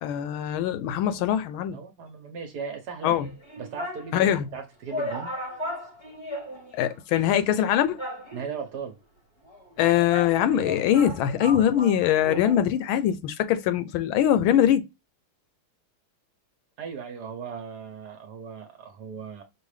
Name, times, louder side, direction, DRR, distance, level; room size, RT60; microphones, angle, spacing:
voice 1, 0.0-1.8 3.0-3.3 4.1-4.4 6.7-8.0 9.8-14.8, left 10 dB, 80° left, 1.3 m, -22 dB
voice 2, 1.7-3.2 3.6-5.3 8.3-9.0 16.8-19.4, right 6 dB, 60° right, 1.3 m, -37 dB
sound 1, 3.1-4.1 4.6-4.7 4.9-7.0 7.2-7.3 8.0-8.7 9.5-12.6 12.9-13.0, left 1 dB, 25° left, 0.6 m, -36 dB
5.4 x 2.5 x 3.2 m
omnidirectional pair, 2.3 m